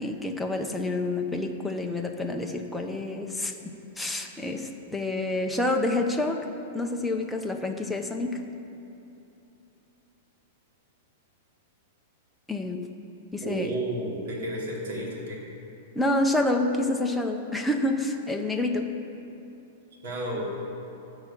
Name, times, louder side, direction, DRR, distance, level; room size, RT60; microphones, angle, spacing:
voice 1, 0.0-3.5 4.0-6.5 6.7-8.4 12.5-12.9 13.3-13.7 15.9-18.9, left 2 dB, 5° left, 2 dB, 0.6 m, -28 dB
voice 2, 13.4-15.4 20.0-20.5, right 1 dB, 60° right, -3 dB, 3.1 m, -32 dB
13.0 x 4.9 x 8.3 m, 2.8 s
supercardioid pair, 160°, 0 cm